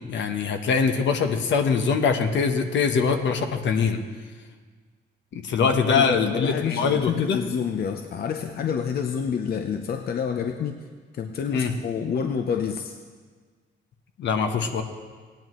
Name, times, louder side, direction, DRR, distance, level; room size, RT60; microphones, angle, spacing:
voice 1, 0.1-4.0 5.3-7.4 11.5-11.7 14.2-14.8, left 5 dB, 70° left, 5 dB, 1.0 m, -23 dB
voice 2, 5.6-10.9 11.1-13.0, left 7 dB, 50° left, 5 dB, 0.7 m, -28 dB
17.0 x 10.5 x 3.1 m, 1.5 s
cardioid pair, 90°, 20 cm